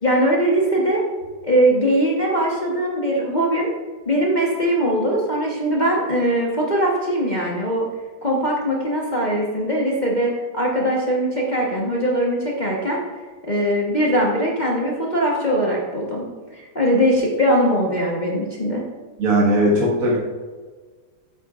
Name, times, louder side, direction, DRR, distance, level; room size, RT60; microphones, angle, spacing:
voice 1, 0.0-1.0 1.4-3.7 4.0-7.8 8.2-13.0 13.5-16.3 16.5-18.8, equal, 30° left, -4 dB, 1.2 m, -21 dB
voice 2, 19.2-20.2, right 1 dB, 55° right, -5 dB, 2.0 m, -18 dB
8.9 x 8.8 x 2.5 m, 1.5 s
omnidirectional pair, 1.8 m